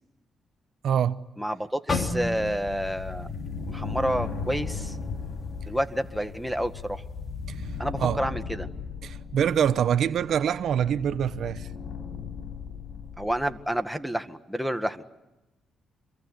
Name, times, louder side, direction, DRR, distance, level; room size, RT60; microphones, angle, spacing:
voice 1, 0.8-1.2 7.5-7.7 8.0-8.2 9.0-11.7, right 9 dB, 70° right, 0.9 m, -25 dB
voice 2, 1.4-3.3 3.7-5.0 5.7-7.0 7.8-8.7 13.2-15.0, equal, ahead, 1.8 m, -29 dB
sound 1, 1.9-5.9 6.3-6.5 7.2-7.5, left 3 dB, 35° left, 3.3 m, -35 dB
sound 2, 2.4-13.6, left 5 dB, 70° left, 6.4 m, -37 dB
27.5 x 22.5 x 9.6 m
cardioid pair, 85°, 0 cm